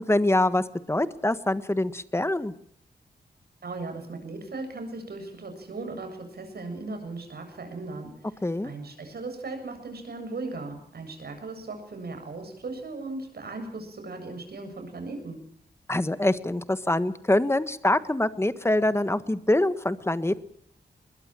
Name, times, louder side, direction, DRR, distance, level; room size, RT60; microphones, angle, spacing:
voice 1, 0.0-2.5 8.4-8.7 15.9-20.4, left 1 dB, 15° left, 13 dB, 1.4 m, -25 dB
voice 2, 3.6-15.4, right 3 dB, 70° right, 6 dB, 7.7 m, -37 dB
22.0 x 21.0 x 7.6 m, 0.63 s
wide cardioid pair, 90°, 17 cm